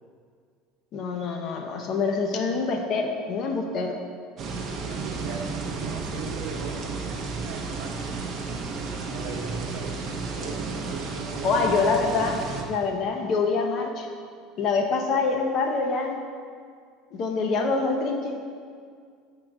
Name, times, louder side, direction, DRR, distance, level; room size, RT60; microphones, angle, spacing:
voice 1, 0.9-4.0 11.4-12.4 12.7-14.1 14.6-16.2 17.1-18.4, left 4 dB, 35° left, 3 dB, 0.7 m, -25 dB
sound 1, 4.4-12.6, right 4 dB, 30° right, 0.6 m, -32 dB
voice 2, 4.8-5.5 5.8-6.8 7.4-8.1 9.1-9.9 10.3-11.8, right 5 dB, 60° right, 1 dB, 1.0 m, -39 dB
7.6 x 3.8 x 5.8 m, 2.1 s
cardioid pair, 175°, 0 cm